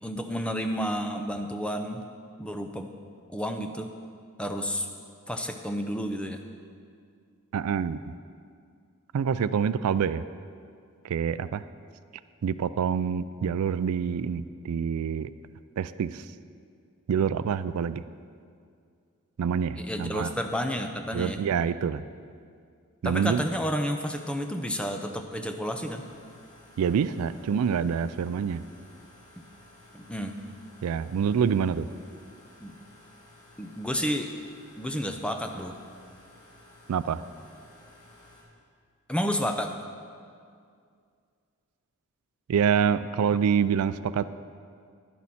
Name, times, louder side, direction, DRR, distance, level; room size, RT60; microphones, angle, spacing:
voice 1, 0.0-2.0 2.4-2.9 3.3-3.9 4.4-4.9 5.3-6.4 19.8-21.4 23.0-26.1 29.9-30.4 32.6-32.7 33.6-34.3 34.8-35.8 39.1-39.7, equal, 5° left, 5 dB, 0.5 m, -31 dB
voice 2, 7.5-8.0 9.1-10.2 11.0-11.6 12.4-15.3 15.8-16.2 17.1-18.0 19.4-20.3 21.1-22.0 23.0-23.4 26.8-28.6 30.8-31.9 36.9-37.2 42.5-44.4, right 7 dB, 80° right, 14 dB, 0.3 m, -26 dB
sound 1, 25.7-38.4, left 1 dB, 75° left, 3.2 m, -54 dB
11.0 x 10.5 x 4.2 m, 2.3 s
head